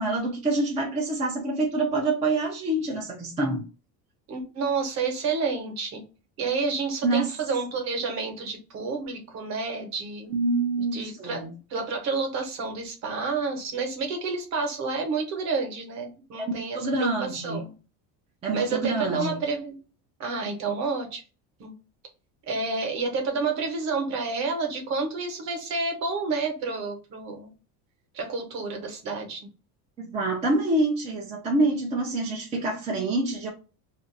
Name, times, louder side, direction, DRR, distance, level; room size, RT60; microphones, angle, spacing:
voice 1, 0.0-3.6 7.0-7.3 10.3-11.5 16.4-17.6 18.4-19.4 30.0-33.5, right 2 dB, 15° right, 0.4 m, -26 dB
voice 2, 4.3-6.0 6.4-10.3 10.9-17.7 18.5-19.8 20.2-21.2 21.6-21.7 22.5-27.5 28.1-29.4, right 4 dB, 45° right, 1.0 m, -29 dB
2.6 x 2.4 x 3.8 m
cardioid pair, 170°, 39 cm